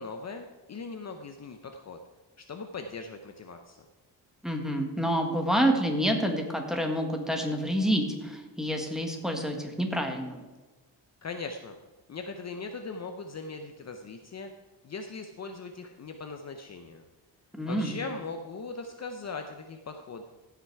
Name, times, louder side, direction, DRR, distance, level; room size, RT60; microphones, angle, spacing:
voice 1, 0.0-2.0 2.4-3.9 11.2-11.8 12.1-14.5 14.8-17.0 17.7-20.2, left 4 dB, 40° left, 6 dB, 0.7 m, -39 dB
voice 2, 4.4-10.4 17.5-17.9, equal, ahead, 2 dB, 1.6 m, -28 dB
15.5 x 5.9 x 4.7 m, 1.2 s
cardioid pair, 115°, 43 cm